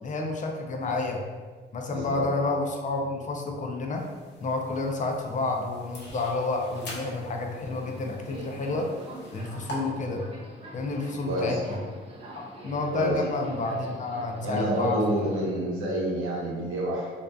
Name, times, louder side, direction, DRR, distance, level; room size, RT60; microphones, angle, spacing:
voice 1, 0.0-1.2 1.7-4.0 4.4-8.9 9.3-10.2 10.7-11.8 12.3-15.3, left 3 dB, 40° left, 1 dB, 0.4 m, -30 dB
voice 2, 1.9-2.2 11.2-11.6 12.9-13.2 14.4-17.1, right 1 dB, 80° right, -4 dB, 0.8 m, -28 dB
sound 1, 3.9-9.8, equal, 60° left, 0.8 m, -45 dB
Subway metro underground, 6.6-15.5, right 1 dB, 30° right, 0.5 m, -45 dB
2.5 x 2.2 x 2.3 m, 1.5 s
cardioid pair, 90°, 20 cm